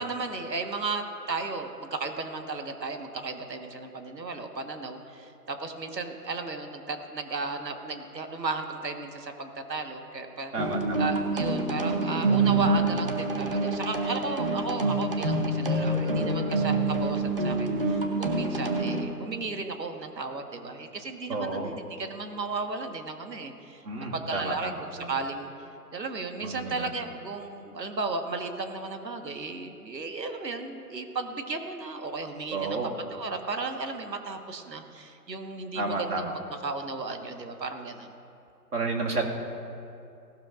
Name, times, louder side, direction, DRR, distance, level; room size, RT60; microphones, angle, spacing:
voice 1, 0.0-10.5 11.0-25.5 25.9-32.8 33.1-36.2 36.6-38.1, right 3 dB, 80° right, 5 dB, 1.6 m, -35 dB
voice 2, 10.5-11.1 21.3-21.7 23.8-25.1 26.4-26.9 32.5-32.9 35.8-36.3 38.7-39.3, right 3 dB, 65° right, -1 dB, 2.3 m, -31 dB
sound 1, 10.6-19.0, right 2 dB, 35° right, 1.0 m, -26 dB
17.5 x 12.5 x 2.6 m, 2.6 s
hypercardioid pair, 170°, 49 cm